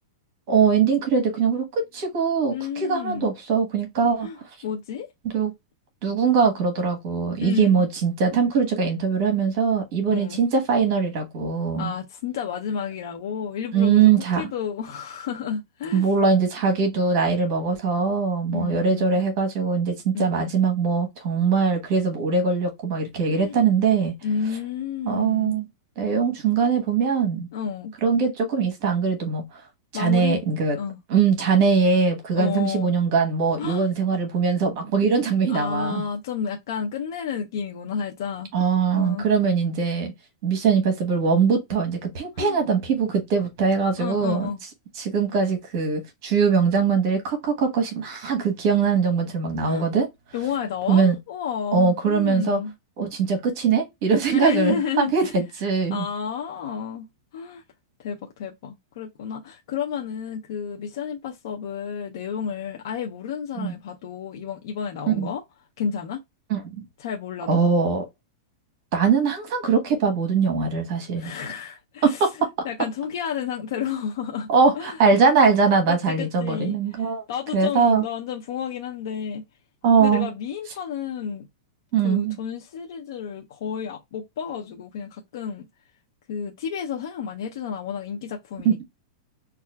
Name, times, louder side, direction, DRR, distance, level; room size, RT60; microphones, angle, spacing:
voice 1, 0.5-4.3 5.3-5.5 6.0-11.9 13.7-14.5 15.9-24.1 25.1-25.7 26.0-27.5 28.0-29.4 29.9-30.8 31.1-36.0 38.5-40.1 40.4-44.5 45.0-50.1 50.9-51.1 51.7-52.6 53.0-56.1 63.6-63.7 65.2-65.3 66.5-66.8 67.5-68.0 68.9-71.3 72.0-72.5 74.5-77.2 77.5-78.0 79.8-80.3 81.9-82.4 88.6-88.8, right 5 dB, 45° right, 1.0 m, -21 dB
voice 2, 2.5-3.3 4.2-4.4 4.6-5.1 7.4-7.8 10.1-10.4 11.8-14.1 14.4-16.1 18.5-19.2 20.1-20.5 23.3-23.6 24.2-25.6 27.5-27.9 29.9-30.4 30.8-31.0 32.4-32.9 33.6-33.9 35.5-38.5 38.9-39.3 42.4-42.6 44.0-44.6 49.6-49.9 50.3-52.7 54.3-55.4 55.9-57.6 58.0-65.4 65.8-66.2 67.0-67.6 71.2-74.5 74.7-75.0 75.9-79.4 80.0-81.5 82.0-85.7 86.3-88.8, left 7 dB, 60° left, 0.5 m, -31 dB
5.4 x 2.4 x 2.2 m
supercardioid pair, 160°, 2 cm